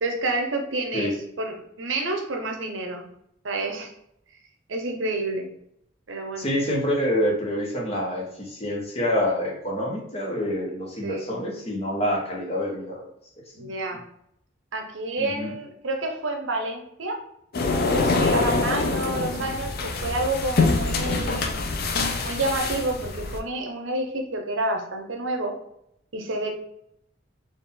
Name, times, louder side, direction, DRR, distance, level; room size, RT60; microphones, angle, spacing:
voice 1, 0.0-1.1 1.4-3.0 3.4-3.9 4.7-5.5 6.1-6.5 11.0-11.2 13.6-14.0 14.7-17.2 17.9-21.6 22.2-25.6 26.1-26.5, right 2 dB, 80° right, 3 dB, 0.8 m, -29 dB
voice 2, 6.4-13.0 13.6-14.0 15.2-15.5 18.4-18.7, equal, 30° left, -2 dB, 1.0 m, -27 dB
sound 1, 17.5-23.4, left 3 dB, 50° left, 0.5 m, -25 dB
4.3 x 2.5 x 3.7 m, 0.74 s
head